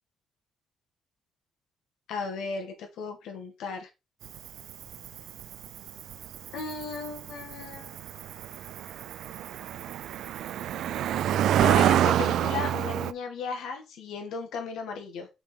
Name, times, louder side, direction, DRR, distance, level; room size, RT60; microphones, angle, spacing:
voice 1, 2.1-3.9 6.5-8.0 11.6-15.3, left 4 dB, 85° left, 4 dB, 1.9 m, -35 dB
Cricket, 4.2-13.1, right 11 dB, 75° right, 0.4 m, -27 dB
5.4 x 5.1 x 4.5 m, 0.25 s
cardioid pair, 90°, 0 cm